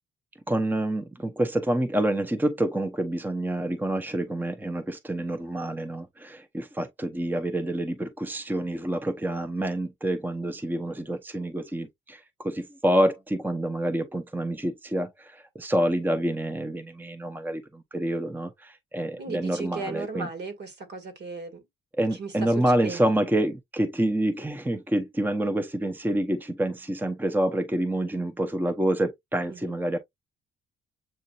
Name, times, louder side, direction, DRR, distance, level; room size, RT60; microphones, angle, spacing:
voice 1, 0.5-20.3 22.0-30.0, right 1 dB, 10° right, 0.8 m, -27 dB
voice 2, 19.2-21.7 22.1-23.0 29.5-29.8, right 4 dB, 60° right, 2.1 m, -36 dB
7.6 x 2.7 x 2.5 m
cardioid pair, 90°, 20 cm